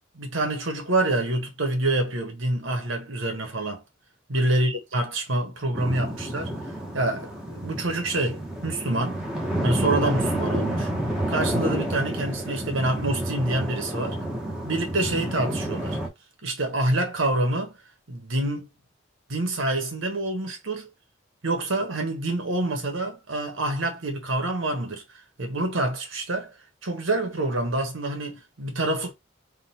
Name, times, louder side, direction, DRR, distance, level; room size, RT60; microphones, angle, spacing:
voice 1, 0.1-3.8 4.3-9.2 9.6-10.9 11.3-14.2 14.6-16.0 16.4-17.8 18.1-18.7 19.3-20.9 21.4-25.0 25.4-26.6 26.8-29.1, right 2 dB, 80° right, 1.2 m, -27 dB
sound 1, 5.7-16.1, right 1 dB, 5° right, 0.9 m, -29 dB
3.8 x 2.3 x 4.2 m
head